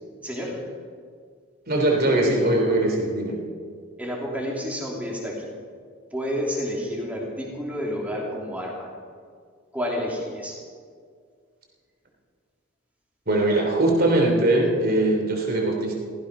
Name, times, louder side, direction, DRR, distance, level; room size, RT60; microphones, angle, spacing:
voice 1, 0.2-0.6 4.0-5.5 6.1-8.9 9.7-10.6, equal, 5° right, -3 dB, 3.2 m, -30 dB
voice 2, 1.7-3.4 13.3-15.9, right 1 dB, 45° right, 1 dB, 3.3 m, -21 dB
16.5 x 15.0 x 5.5 m, 2.1 s
head